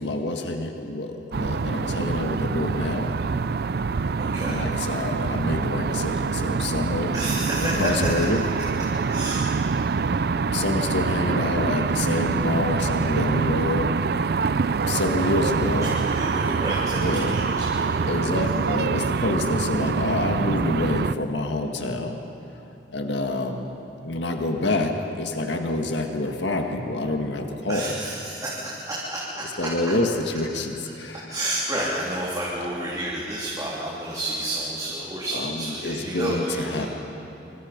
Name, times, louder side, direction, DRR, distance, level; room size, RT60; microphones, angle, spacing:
voice 1, 0.0-3.1 4.5-7.1 7.6-8.4 10.5-14.0 14.9-15.9 17.0-17.4 18.1-22.2 22.9-23.7 24.0-27.9 29.6-31.3 35.3-36.5 36.7-36.9, left 2 dB, 80° left, 4 dB, 1.8 m, -27 dB
sound 1, 1.3-21.1, right 4 dB, 60° right, 0.4 m, -25 dB
voice 2, 4.2-4.6 7.1-8.2 9.1-9.5 15.8-18.4 27.7-29.7 31.3-36.9, right 1 dB, 20° right, -7 dB, 3.4 m, -30 dB
26.5 x 25.5 x 5.3 m, 2.9 s
head